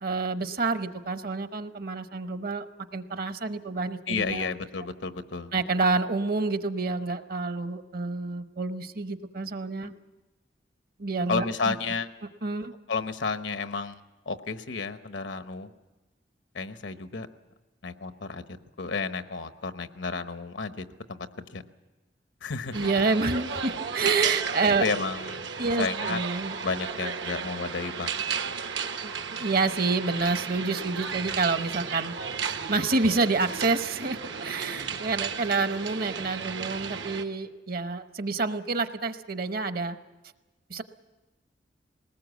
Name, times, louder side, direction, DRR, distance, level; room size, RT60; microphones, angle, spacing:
voice 1, 0.0-2.7 2.9-4.5 5.5-9.9 11.0-11.7 12.4-12.7 22.7-24.8 25.6-26.6 29.0-32.1 32.4-40.0 40.7-40.8, right 3 dB, 55° right, 10 dB, 0.9 m, -28 dB
voice 2, 4.1-5.5 9.8-9.9 11.3-12.1 12.9-14.0 14.3-15.7 16.5-17.3 17.8-18.4 18.8-21.6 22.4-22.8 24.8-25.5 25.8-26.3 26.6-28.1 28.4-28.6, left 4 dB, 85° left, 10 dB, 1.0 m, -32 dB
sound 1, 22.7-37.2, right 6 dB, 80° right, 1.0 m, -34 dB
21.0 x 19.0 x 8.2 m, 1.1 s
head